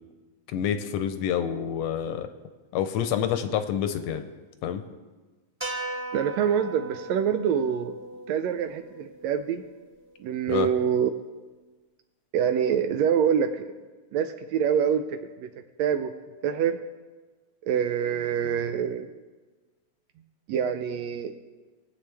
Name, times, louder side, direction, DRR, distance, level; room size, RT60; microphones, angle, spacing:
voice 1, 0.5-2.3 2.7-4.2 4.6-4.8 10.5-10.7, left 9 dB, 75° left, 9 dB, 1.6 m, -27 dB
sound 1, 5.6-9.9, right 2 dB, 15° right, 0.5 m, -38 dB
voice 2, 6.1-7.9 8.3-9.6 10.2-11.1 12.3-13.6 14.1-15.5 15.8-16.1 16.4-16.8 17.6-19.1 20.5-21.3, right 8 dB, 75° right, 8 dB, 1.7 m, -25 dB
22.5 x 8.2 x 3.4 m, 1.3 s
omnidirectional pair, 3.4 m